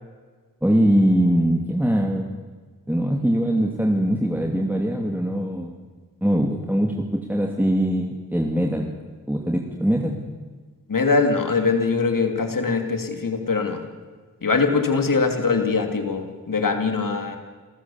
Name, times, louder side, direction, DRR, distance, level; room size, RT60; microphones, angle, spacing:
voice 1, 0.6-2.3 2.9-5.8 6.2-8.9 9.3-10.2, equal, 5° right, 0 dB, 2.6 m, -22 dB
voice 2, 10.9-13.8 14.4-17.4, left 4 dB, 60° left, 5 dB, 2.7 m, -22 dB
27.5 x 14.5 x 7.2 m, 1.4 s
cardioid pair, 40°, 36 cm